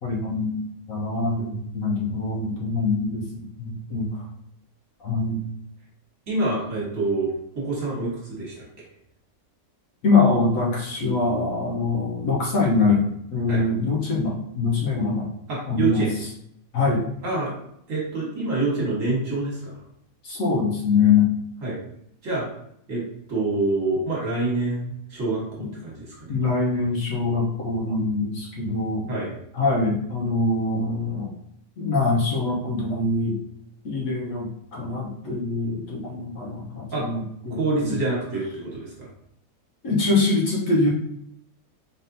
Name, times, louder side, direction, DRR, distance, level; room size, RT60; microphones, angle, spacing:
voice 1, 0.0-4.3 5.0-5.4 10.0-15.3 15.7-16.0 16.7-17.0 20.2-21.3 25.6-25.7 26.3-29.1 29.5-31.3 31.8-33.4 33.8-38.0 39.8-40.9, left 3 dB, 60° left, -2 dB, 1.2 m, -24 dB
voice 2, 6.3-8.8 13.5-13.6 15.5-16.1 17.2-17.6 17.9-19.8 21.6-21.8 22.2-22.5 22.9-26.4 29.1-29.3 36.9-37.0 37.6-39.1, right 2 dB, 55° right, -5 dB, 1.7 m, -27 dB
4.2 x 3.5 x 2.7 m, 0.74 s
omnidirectional pair, 1.7 m